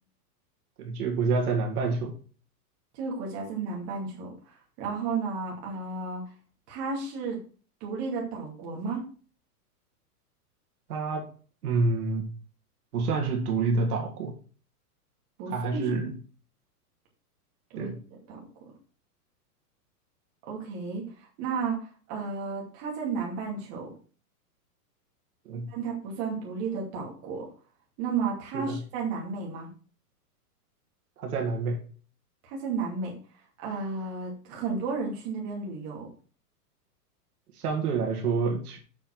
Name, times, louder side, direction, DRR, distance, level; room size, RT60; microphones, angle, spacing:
voice 1, 0.8-2.1 10.9-11.3 11.6-12.2 12.9-14.3 15.5-16.1 17.8-18.0 25.5-25.7 28.5-28.8 31.2-31.8 37.6-38.8, right 4 dB, 70° right, 2 dB, 2.2 m, -28 dB
voice 2, 2.9-6.2 6.7-7.4 7.8-9.1 15.4-15.8 17.7-18.4 20.4-23.9 25.7-27.5 28.0-29.7 32.4-33.1 33.6-36.1, right 5 dB, 30° right, -1 dB, 2.5 m, -33 dB
7.2 x 4.5 x 6.0 m, 0.39 s
supercardioid pair, 170°, 47 cm